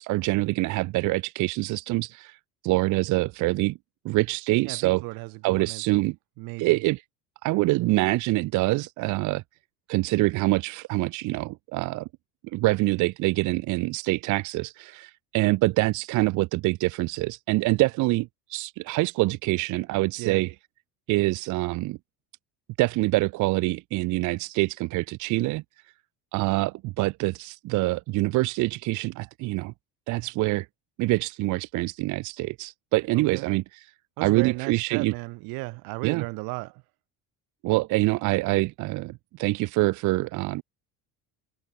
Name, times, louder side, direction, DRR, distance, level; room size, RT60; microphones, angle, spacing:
voice 1, 0.0-2.4 2.6-3.8 4.0-5.0 5.4-6.2 6.6-7.0 7.4-9.4 9.9-12.1 12.5-20.5 21.1-22.0 22.8-25.6 26.3-29.7 30.1-30.7 31.0-33.6 34.2-35.1 36.0-36.2 37.6-40.6, right 21 dB, 55° right, 0.6 m, -25 dB
voice 2, 4.7-6.0 6.4-6.8 20.2-20.4 33.1-33.5 34.2-36.8, right 26 dB, 75° right, 1.3 m, -35 dB
cardioid pair, 135°, 36 cm